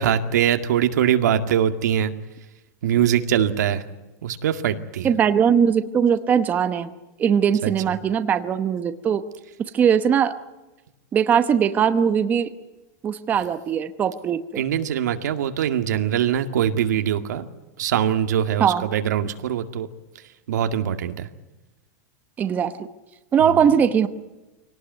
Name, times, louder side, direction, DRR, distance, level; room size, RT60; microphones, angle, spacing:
voice 1, 0.0-2.1 2.8-3.8 4.2-5.1 7.6-8.0 14.6-17.4 17.8-19.9 20.5-21.3 23.4-23.6, right 9 dB, 90° right, 8 dB, 2.1 m, -22 dB
voice 2, 5.0-6.9 7.2-9.2 9.6-10.3 11.1-12.5 13.0-14.6 18.6-18.8 22.4-22.7 23.3-24.1, right 8 dB, 20° right, 10 dB, 0.9 m, -20 dB
24.5 x 18.5 x 9.4 m, 1.1 s
supercardioid pair, 165°, 9 cm